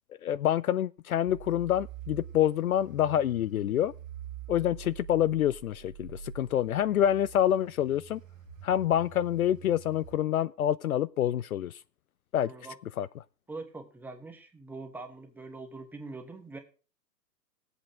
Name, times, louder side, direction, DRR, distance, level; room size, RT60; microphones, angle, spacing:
voice 1, 0.2-3.9 4.5-8.2 8.6-11.8 12.3-12.5 13.0-13.1, left 11 dB, 60° left, 0.5 m, -27 dB
FX Vibration Tool LR, 1.3-10.2, right 8 dB, 50° right, 1.9 m, -46 dB
voice 2, 12.4-12.8 13.5-16.6, right 3 dB, 5° right, 1.0 m, -43 dB
17.5 x 8.1 x 3.6 m
hypercardioid pair, 135°, 50 cm